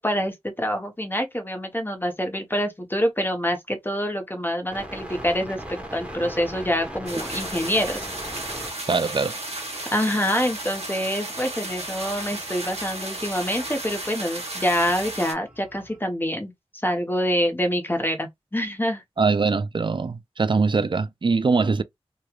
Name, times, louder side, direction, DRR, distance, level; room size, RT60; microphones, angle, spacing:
voice 1, 0.0-8.1 9.9-16.5 16.8-19.0, equal, 20° left, 0.9 m, -26 dB
sound 1, 4.7-16.0, right 1 dB, 10° right, 1.1 m, -41 dB
sound 2, 7.1-15.3, right 2 dB, 70° right, 1.0 m, -34 dB
voice 2, 8.9-9.4 19.2-21.8, right 4 dB, 50° right, 0.4 m, -22 dB
3.0 x 2.3 x 2.3 m
wide cardioid pair, 55°, 11 cm